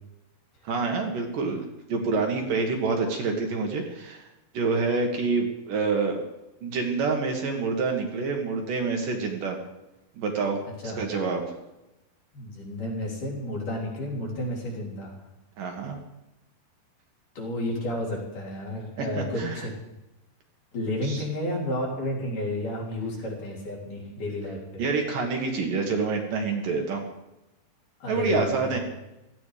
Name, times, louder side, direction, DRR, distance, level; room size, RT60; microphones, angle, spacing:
voice 1, 0.6-4.3 4.5-6.2 6.6-9.6 10.2-11.4 15.6-16.0 19.0-19.7 21.0-21.2 24.8-27.0 28.1-28.8, right 4 dB, 60° right, 2 dB, 3.0 m, -27 dB
voice 2, 12.3-15.2 17.3-19.8 20.7-24.8 28.0-28.8, left 1 dB, 55° left, -3 dB, 5.1 m, -31 dB
17.0 x 14.5 x 5.0 m, 0.95 s
omnidirectional pair, 4.6 m